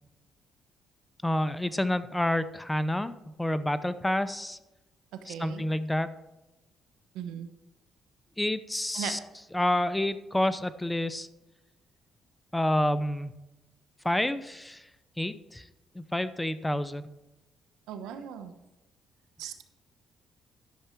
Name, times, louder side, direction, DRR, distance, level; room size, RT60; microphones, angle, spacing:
voice 1, 1.2-4.6 5.3-6.1 8.4-9.2 9.5-11.3 12.5-13.3 14.0-14.9 15.2-15.6 15.9-17.1, left 1 dB, 10° left, 13 dB, 0.6 m, -28 dB
voice 2, 5.2-5.6 7.1-7.5 8.9-9.1 17.9-18.5 19.4-19.6, right 8 dB, 90° right, 9 dB, 1.0 m, -38 dB
11.0 x 6.9 x 4.5 m, 0.99 s
cardioid pair, 80°, 0 cm